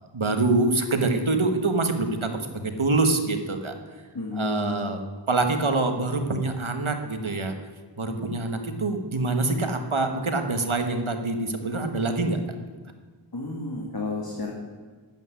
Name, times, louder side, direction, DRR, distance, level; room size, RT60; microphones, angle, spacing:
voice 1, 0.1-3.7 4.3-5.0 5.3-7.5 8.0-12.4, right 3 dB, 85° right, 6 dB, 1.6 m, -25 dB
voice 2, 4.1-4.7 13.3-14.5, left 3 dB, 50° left, 0 dB, 2.2 m, -31 dB
12.0 x 9.2 x 9.6 m, 1.5 s
wide cardioid pair, 45°, 47 cm